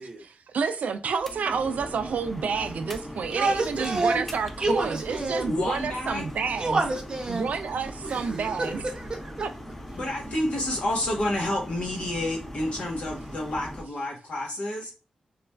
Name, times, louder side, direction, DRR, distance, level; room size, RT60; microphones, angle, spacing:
voice 1, 0.5-6.8 7.3-8.8 9.4-9.5, right 5 dB, 85° right, 0.3 m, -29 dB
sound 1, 1.2-13.8, equal, 10° left, 0.3 m, -40 dB
voice 2, 3.3-4.2 4.6-5.5 6.6-7.5 8.0-9.3, right 2 dB, 35° right, 0.6 m, -28 dB
voice 3, 5.5-6.2 9.9-14.9, left 1 dB, 60° left, 1.1 m, -29 dB
3.1 x 2.3 x 2.2 m
wide cardioid pair, 155°, 2 cm